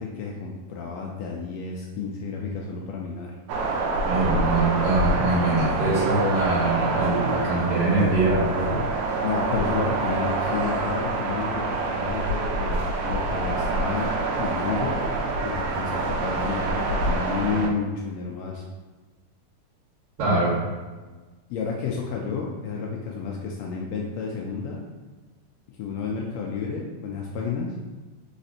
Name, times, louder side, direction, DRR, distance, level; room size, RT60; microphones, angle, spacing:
voice 1, 0.0-3.4 9.2-14.1 14.4-15.1 15.4-18.6 21.5-24.8 25.8-27.7, left 5 dB, 80° left, -1 dB, 1.5 m, -31 dB
sound 1, 3.5-17.7, right 3 dB, 80° right, 1.4 m, -26 dB
voice 2, 4.0-8.8 20.2-20.6, right 2 dB, 60° right, -6 dB, 2.3 m, -23 dB
4.2 x 4.1 x 2.7 m, 1.3 s
omnidirectional pair, 3.3 m